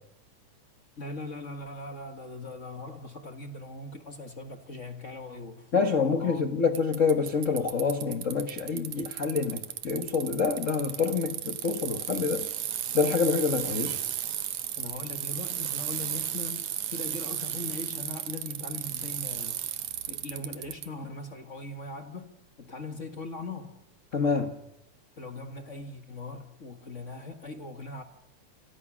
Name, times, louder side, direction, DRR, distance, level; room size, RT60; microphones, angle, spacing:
voice 1, 1.0-6.4 14.8-19.6 20.1-23.8 25.2-28.0, left 2 dB, 35° left, 1.3 m, -40 dB
voice 2, 5.7-12.5 12.9-14.0 24.1-24.6, left 5 dB, 55° left, 0.8 m, -27 dB
Bicycle, 6.8-20.9, right 11 dB, 70° right, 2.5 m, -34 dB
28.5 x 27.5 x 6.2 m
omnidirectional pair, 3.6 m